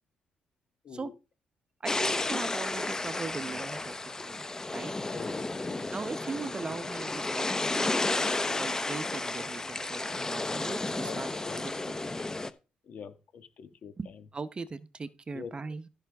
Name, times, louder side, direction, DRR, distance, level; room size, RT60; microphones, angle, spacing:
voice 1, 1.8-3.9 4.2-4.4 4.7-4.9 5.9-11.7 14.0-15.9, right 4 dB, 30° right, 0.8 m, -39 dB
sound 1, 1.9-12.5, left 2 dB, 20° left, 0.8 m, -32 dB
voice 2, 5.0-5.9 11.0-11.6 12.8-14.2 15.3-15.5, left 6 dB, 60° left, 1.5 m, -45 dB
15.0 x 5.7 x 3.5 m
cardioid pair, 90°, 3 cm